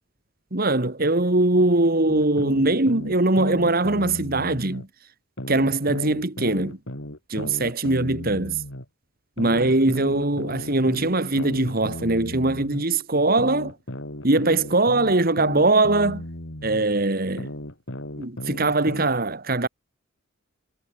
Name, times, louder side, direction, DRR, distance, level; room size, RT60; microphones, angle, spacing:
voice 1, 0.5-4.9 5.5-6.8 7.3-8.6 9.4-13.8 14.2-16.2 16.6-17.5 18.2-19.7, right 2 dB, 50° right, 2.1 m, -21 dB
sound 1, 2.1-4.9 5.4-8.9 9.4-12.9 13.4-16.9 17.4-19.1, left 1 dB, 75° left, 5.7 m, -35 dB
head